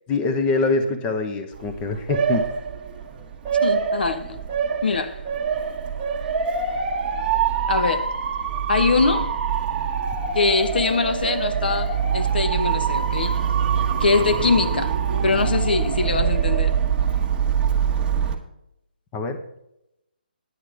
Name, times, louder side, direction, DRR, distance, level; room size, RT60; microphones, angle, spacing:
voice 1, 0.1-2.4 19.1-19.4, left 3 dB, 15° left, 1.0 m, -24 dB
Motor vehicle (road) / Siren, 1.5-18.3, right 7 dB, 15° right, 1.4 m, -24 dB
voice 2, 3.6-4.4 4.8-5.2 7.7-8.1 8.7-9.4 10.3-13.4 14.0-14.9 15.2-16.8, left 4 dB, 70° left, 1.0 m, -22 dB
10.0 x 9.0 x 4.9 m
hypercardioid pair, 155°, 5 cm